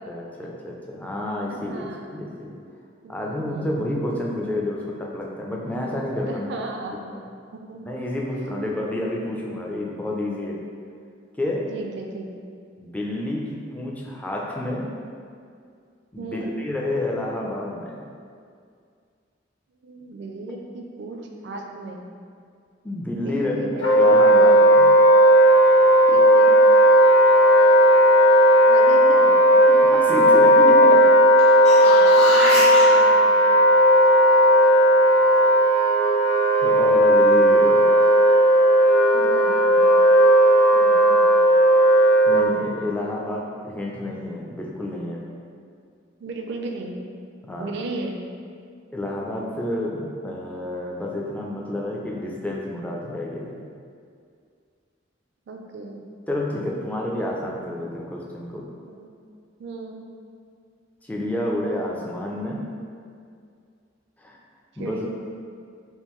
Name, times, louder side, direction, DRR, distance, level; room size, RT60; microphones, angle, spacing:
voice 1, 0.1-2.5 3.1-6.5 7.9-10.6 11.4-11.7 12.8-14.9 16.1-18.1 22.8-23.6 24.0-24.9 29.7-31.0 32.8-32.9 36.6-37.8 42.3-45.2 47.4-47.7 48.9-53.6 56.3-58.7 61.0-62.7 64.2-64.4 64.8-65.1, left 1 dB, 10° left, -3 dB, 0.3 m, -29 dB
voice 2, 1.5-2.0 3.0-3.8 6.3-7.1 7.7-7.8 8.2-8.7 11.7-12.3 16.2-16.5 19.8-22.1 23.1-24.7 26.1-26.6 28.7-29.4 32.5-33.3 39.1-39.8 40.7-41.3 46.2-47.1 47.6-48.2 55.5-56.0 58.8-59.1 59.6-60.0 64.8-65.1, right 2 dB, 65° right, 2 dB, 0.4 m, -35 dB
Wind instrument woodwind instrument, 23.8-42.4, equal, 80° left, 0.5 m, -15 dB
sound 1, 31.4-32.8 37.6-37.7, equal, 35° left, 1.0 m, -25 dB
3.5 x 2.5 x 3.0 m, 2.3 s
head